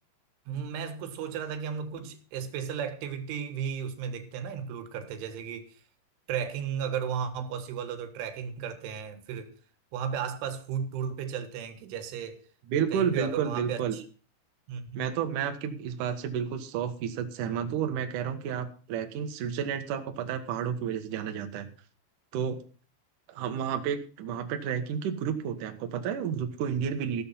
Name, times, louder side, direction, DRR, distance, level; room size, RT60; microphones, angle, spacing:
voice 1, 0.5-5.8 6.3-9.5 9.9-12.4 12.9-14.0 14.7-15.1, right 7 dB, 90° right, 4.0 m, -34 dB
voice 2, 12.7-14.0 14.9-21.7 22.3-22.6 23.3-27.2, right 8 dB, 60° right, 2.3 m, -31 dB
15.0 x 7.7 x 5.7 m
omnidirectional pair, 5.4 m